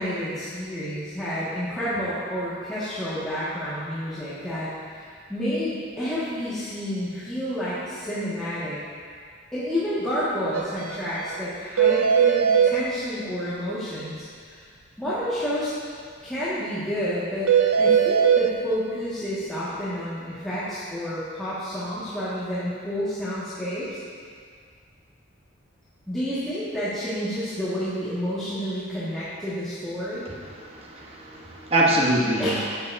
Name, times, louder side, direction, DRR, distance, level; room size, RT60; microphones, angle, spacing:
voice 1, 0.0-8.8 9.5-14.6 15.0-15.7 16.2-17.5 17.8-24.0 26.1-30.3 32.4-32.7, equal, 5° left, -14 dB, 1.7 m, -30 dB
sound 1, 10.5-10.6 10.9-11.0 11.3-11.4 11.8-12.8 17.5-18.5, right 7 dB, 85° right, 0.6 m, -19 dB
voice 2, 30.5-32.5, right 1 dB, 30° right, -3 dB, 1.0 m, -24 dB
12.5 x 8.8 x 2.7 m, 2.1 s
head